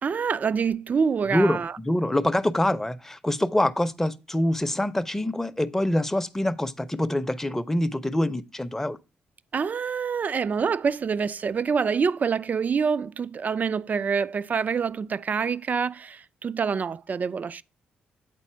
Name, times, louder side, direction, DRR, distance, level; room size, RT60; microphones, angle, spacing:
voice 1, 0.0-1.7 9.5-17.6, right 6 dB, 45° right, 0.3 m, -26 dB
voice 2, 1.3-9.0, left 1 dB, 10° left, 0.6 m, -25 dB
8.3 x 4.1 x 4.3 m
supercardioid pair, 65°, 4 cm